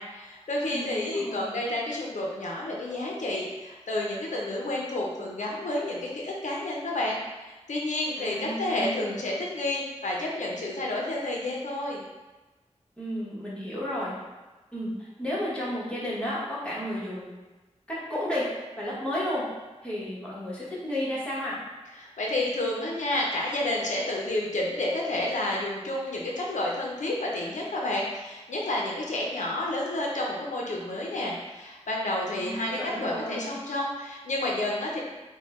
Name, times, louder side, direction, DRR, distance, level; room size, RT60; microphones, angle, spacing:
voice 1, 0.0-12.0 22.0-35.0, left 1 dB, 85° left, -3 dB, 0.5 m, -30 dB
voice 2, 0.7-1.6 8.2-9.3 13.0-14.2 14.7-17.3 17.9-18.5 18.8-19.5 19.8-21.6 32.3-33.5, left 1 dB, 10° left, -8 dB, 1.2 m, -32 dB
3.5 x 2.2 x 3.5 m, 1.2 s
wide cardioid pair, 65°, 12 cm